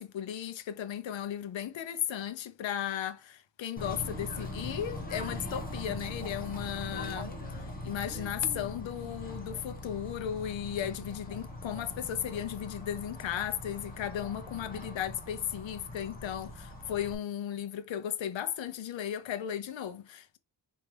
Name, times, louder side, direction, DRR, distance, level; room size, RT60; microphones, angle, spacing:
voice 1, 0.0-20.4, left 10 dB, 80° left, 0.7 m, -35 dB
Bird / Train, 3.8-17.1, left 1 dB, 20° left, 1.1 m, -41 dB
4.5 x 2.7 x 3.2 m
wide cardioid pair, 150°, 45 cm